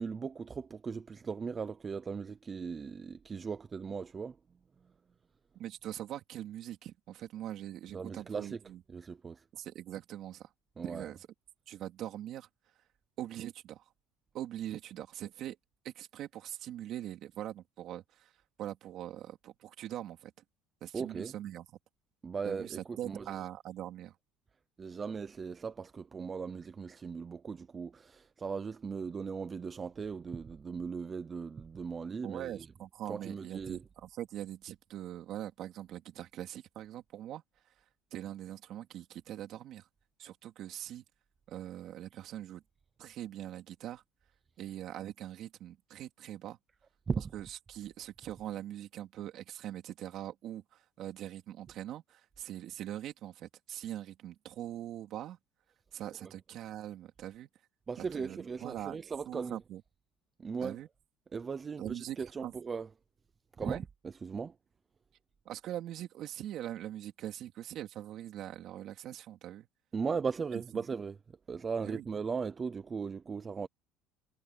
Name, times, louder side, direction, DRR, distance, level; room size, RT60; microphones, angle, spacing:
voice 1, 0.0-4.4 7.9-8.6 8.9-9.4 10.8-11.1 20.9-21.3 22.2-23.4 24.8-32.7 33.1-33.8 47.1-47.2 56.2-56.3 57.9-59.6 60.4-60.8 61.3-62.9 63.6-64.5 69.9-71.2 71.5-73.7, right 5 dB, 25° right, 0.7 m, -38 dB
voice 2, 5.6-8.8 9.5-10.5 10.8-11.3 11.7-12.5 13.2-13.8 14.3-15.6 15.8-18.3 18.6-20.3 20.8-21.6 22.4-24.1 32.2-37.4 38.1-39.9 40.2-41.0 41.5-42.6 43.0-44.0 44.6-46.6 47.3-55.4 55.9-57.5 58.0-59.0 59.3-59.8 60.6-60.9 61.8-62.5 63.6-63.8 65.4-69.7 70.5-70.8 71.8-72.0, right 12 dB, 50° right, 3.5 m, -42 dB
cardioid pair, 140°, 0 cm